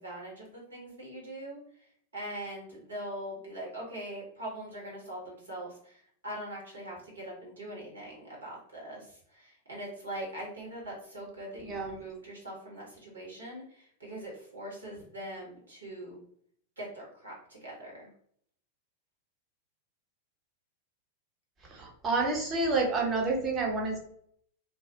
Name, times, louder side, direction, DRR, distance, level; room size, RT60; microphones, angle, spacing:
voice 1, 0.0-1.6 2.1-16.2 16.8-18.1, right 1 dB, 75° right, -3 dB, 1.1 m, -42 dB
voice 2, 11.6-12.0 21.7-24.0, right 3 dB, 25° right, 0 dB, 0.8 m, -29 dB
2.5 x 2.0 x 2.6 m, 0.64 s
figure-of-eight pair, 90°, 0 cm